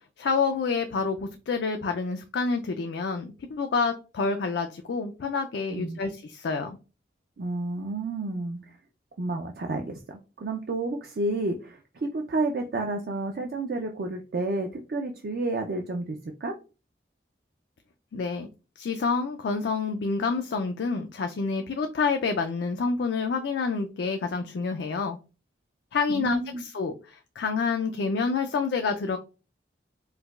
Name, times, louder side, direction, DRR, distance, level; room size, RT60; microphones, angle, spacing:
voice 1, 0.2-6.8 18.1-18.5 18.8-25.2 25.9-29.2, left 4 dB, 75° left, 5 dB, 0.4 m, -28 dB
voice 2, 7.4-8.6 9.2-16.5 26.1-26.6, right 2 dB, 60° right, 3 dB, 0.4 m, -30 dB
4.6 x 2.2 x 2.3 m, 0.32 s
head